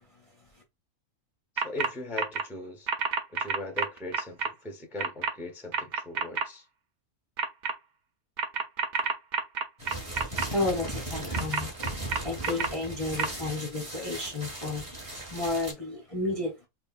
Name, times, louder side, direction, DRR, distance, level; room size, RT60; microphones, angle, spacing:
voice 1, 1.5-2.9 3.3-6.7, left 1 dB, ahead, 0.6 m, -39 dB
sound 1, 1.6-1.9 2.2-2.4 2.9-4.5 5.0-5.3 5.7-6.4 7.4-7.7 8.4-10.4 11.3-12.7 13.2-13.3, right 5 dB, 70° right, 0.4 m, -28 dB
sound 2, 9.8-15.7, right 1 dB, 25° right, 1.9 m, -37 dB
voice 2, 10.5-11.8 12.2-15.0 15.3-16.7, left 2 dB, 30° left, 0.7 m, -32 dB
5.6 x 2.5 x 2.4 m
omnidirectional pair, 1.6 m